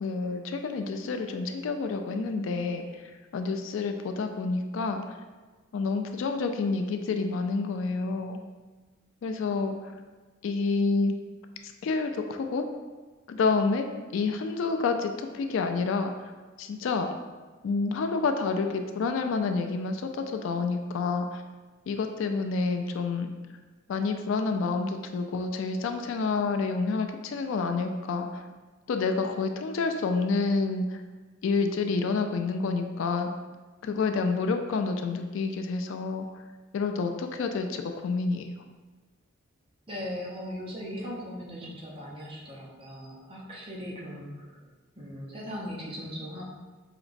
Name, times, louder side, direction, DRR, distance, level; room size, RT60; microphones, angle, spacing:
voice 1, 0.0-5.0 5.7-8.4 9.2-9.9 10.4-11.2 11.6-12.6 13.3-13.9 14.1-16.3 16.6-17.1 17.6-21.4 21.9-23.3 23.9-28.4 28.9-31.0 31.4-33.3 33.8-36.3 36.7-38.5, left 4 dB, 65° left, 6 dB, 0.3 m, -28 dB
voice 2, 39.9-44.3 45.0-46.5, equal, 25° right, -4 dB, 0.7 m, -38 dB
5.0 x 2.9 x 2.5 m, 1.3 s
head